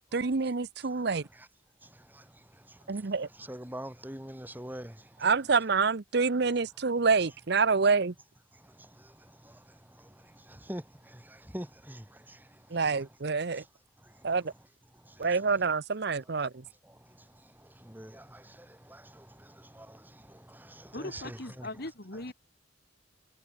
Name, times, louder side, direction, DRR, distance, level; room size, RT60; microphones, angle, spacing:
voice 1, 0.1-1.2 2.9-3.3 5.2-8.1 12.7-13.6 14.2-14.5 15.2-16.5, right 4 dB, 60° right, 0.7 m, -27 dB
voice 2, 3.5-4.9 10.7-10.8 11.5-12.0 17.9-18.2 20.9-21.7, equal, 10° right, 3.1 m, -40 dB
voice 3, 20.9-22.3, left 2 dB, 55° left, 3.0 m, -39 dB
head